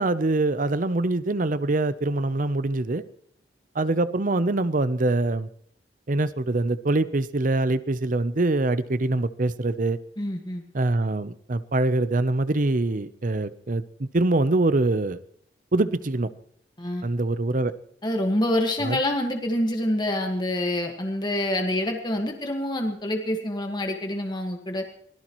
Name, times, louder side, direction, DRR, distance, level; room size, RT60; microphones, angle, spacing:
voice 1, 0.0-3.0 3.7-5.5 6.1-10.0 10.7-15.2 15.7-16.3 17.0-17.7 18.8-19.0, right 2 dB, 50° right, 14 dB, 0.7 m, -24 dB
voice 2, 10.2-10.6 16.8-17.1 18.0-24.8, left 1 dB, 25° left, 3 dB, 1.6 m, -26 dB
24.0 x 17.5 x 3.1 m, 0.65 s
head